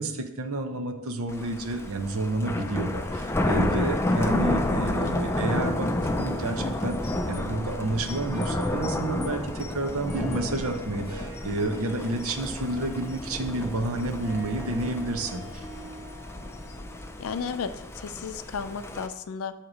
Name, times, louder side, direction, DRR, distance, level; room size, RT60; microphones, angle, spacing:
voice 1, 0.0-15.7, right 2 dB, 75° right, 6 dB, 0.7 m, -30 dB
Thunder, 1.3-19.1, left 1 dB, 10° left, 0.4 m, -30 dB
voice 2, 4.8-5.5 17.2-19.5, left 6 dB, 70° left, 11 dB, 0.4 m, -34 dB
Harp, 7.3-18.4, right 1 dB, 5° right, 2.5 m, -47 dB
7.8 x 2.9 x 6.1 m, 1.0 s
head